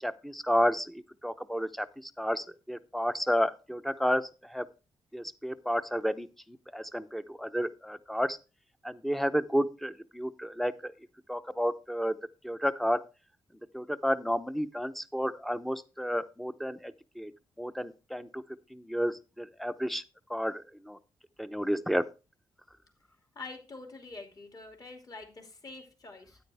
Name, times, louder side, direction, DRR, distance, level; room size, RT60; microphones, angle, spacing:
voice 1, 0.0-1.9 2.2-4.2 4.5-4.7 5.1-6.3 6.7-8.4 8.8-10.9 11.3-12.2 12.4-13.0 13.7-17.3 17.6-18.4 18.7-20.0 20.3-21.0 21.4-22.0, equal, ahead, 12 dB, 0.8 m, -31 dB
voice 2, 23.3-26.4, left 3 dB, 40° left, 3 dB, 2.7 m, -46 dB
9.2 x 9.1 x 3.5 m, 0.31 s
cardioid pair, 65°, 10 cm